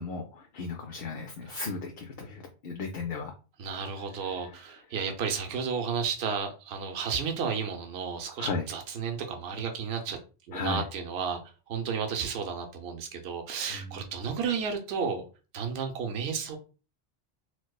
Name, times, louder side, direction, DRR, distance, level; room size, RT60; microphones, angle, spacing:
voice 1, 0.0-3.3 4.2-4.3 8.4-8.7 10.5-10.8 13.7-14.0, left 4 dB, 65° left, 0.7 m, -35 dB
voice 2, 3.6-10.2 10.5-11.4 11.7-15.2 15.5-16.6, right 6 dB, 70° right, 0.8 m, -32 dB
4.5 x 2.1 x 2.3 m
omnidirectional pair, 1.1 m